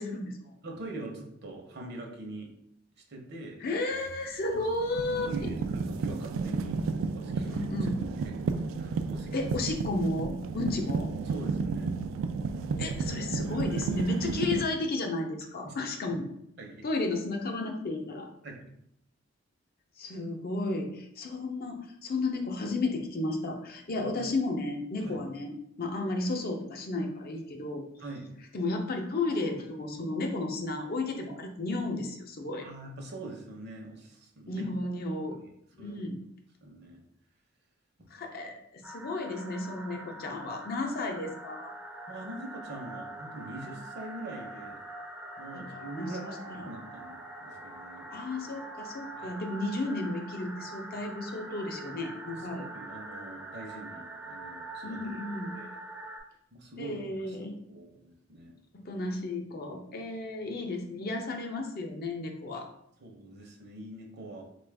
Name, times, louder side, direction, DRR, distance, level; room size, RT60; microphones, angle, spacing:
voice 1, 0.0-0.5 3.6-5.5 7.5-8.0 9.3-11.1 12.8-16.2 16.8-18.3 20.0-27.8 28.5-32.7 34.5-35.4 35.8-36.2 38.1-41.7 45.5-45.7 46.0-46.7 48.1-52.7 54.8-55.6 56.8-57.6 58.7-62.7, left 2 dB, 50° left, 3 dB, 0.5 m, -33 dB
voice 2, 0.6-2.5 3.1-3.6 4.5-4.6 5.3-6.8 7.1-7.9 8.2-8.3 8.8-9.3 11.2-11.9 15.6-15.8 16.1-16.2 16.6-16.8 18.4-18.6 23.9-24.1 25.0-25.2 28.0-28.3 32.6-34.9 35.8-36.0 36.6-37.0 42.1-44.8 45.4-48.1 49.2-49.4 52.3-55.2 55.6-55.7 56.5-57.4 57.7-58.5 63.0-64.4, right 2 dB, 60° right, 1 dB, 0.8 m, -43 dB
sound 1, 4.0-4.2 4.7-14.7, right 4 dB, 80° right, 0.3 m, -32 dB
sound 2, 38.8-56.2, right 2 dB, 10° right, 0.4 m, -44 dB
4.0 x 2.4 x 3.3 m, 0.73 s
head